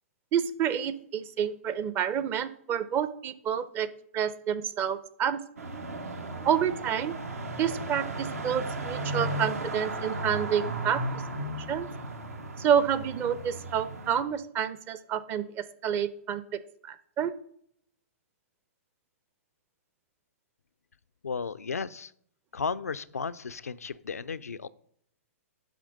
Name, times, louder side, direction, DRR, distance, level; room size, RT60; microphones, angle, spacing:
voice 1, 0.3-3.9 4.1-5.4 6.4-7.1 7.6-11.0 11.7-11.9 12.6-17.3, right 8 dB, 25° right, 15 dB, 0.6 m, -29 dB
sound 1, 5.6-14.2, right 2 dB, 75° right, 1.1 m, -35 dB
voice 2, 21.2-22.1 22.5-24.7, left 5 dB, 85° left, 13 dB, 0.4 m, -34 dB
10.0 x 3.5 x 6.3 m, 0.67 s
hypercardioid pair, 120°, 8 cm